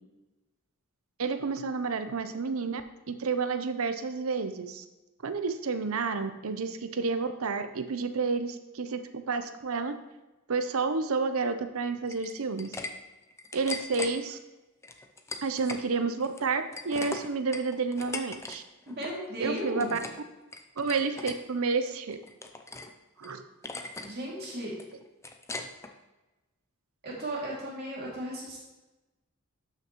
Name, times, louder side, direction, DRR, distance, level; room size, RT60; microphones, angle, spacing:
voice 1, 1.2-2.8 3.1-4.8 5.2-9.0 9.3-10.0 10.5-12.7 13.5-14.4 15.4-18.6 19.4-20.0 20.8-22.2 23.2-23.4, right 4 dB, 70° right, 9 dB, 0.6 m, -30 dB
sound 1, 12.1-12.9 13.2-14.1 14.8-15.8 16.2-18.6 18.8-19.2 19.5-20.2 20.5-21.4 21.8-22.9 23.2-23.3 23.6-24.1 24.4-25.9, left 3 dB, 15° left, 0.5 m, -39 dB
voice 2, 18.9-20.0 24.0-24.7 27.0-28.6, right 1 dB, 45° right, -5 dB, 2.5 m, -35 dB
12.0 x 5.9 x 3.1 m, 1.1 s
head